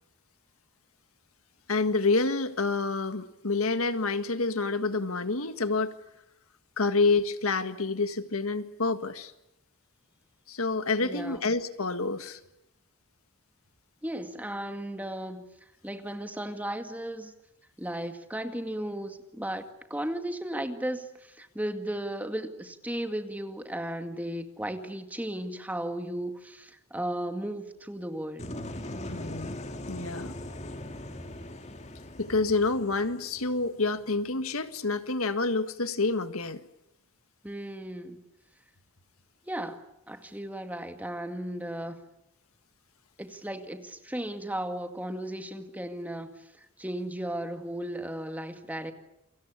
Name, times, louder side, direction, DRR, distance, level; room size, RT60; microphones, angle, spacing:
voice 1, 1.7-5.9 6.8-9.3 10.5-12.4 29.1-29.6 29.9-30.3 32.2-36.6, left 3 dB, 80° left, 10 dB, 1.8 m, -28 dB
voice 2, 11.0-11.4 14.0-15.4 15.8-17.3 17.8-19.6 19.9-28.5 37.4-38.2 39.5-42.0 43.2-48.9, right 1 dB, 5° right, 7 dB, 2.0 m, -35 dB
sound 1, 28.4-34.3, left 1 dB, 30° left, 2.2 m, -40 dB
29.0 x 24.5 x 8.4 m, 0.84 s
head